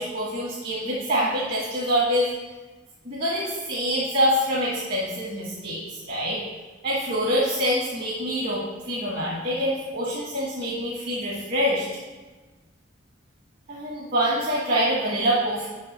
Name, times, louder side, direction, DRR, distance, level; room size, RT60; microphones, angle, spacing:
voice 1, 0.0-2.3 3.0-6.4 6.8-11.9 13.7-15.7, equal, 50° right, -6 dB, 1.7 m, -25 dB
6.1 x 5.9 x 6.7 m, 1.3 s
head